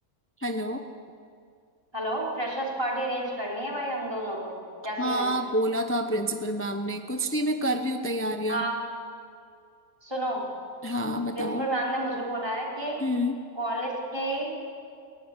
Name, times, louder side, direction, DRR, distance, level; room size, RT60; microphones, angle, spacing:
voice 1, 0.4-0.8 5.0-8.6 10.8-11.7 13.0-13.4, equal, 10° left, 6 dB, 0.8 m, -28 dB
voice 2, 1.9-5.3 8.5-8.8 10.0-10.4 11.3-13.0 13.6-14.6, right 1 dB, 15° right, -3 dB, 4.0 m, -30 dB
18.5 x 15.0 x 10.0 m, 2.2 s
omnidirectional pair, 1.6 m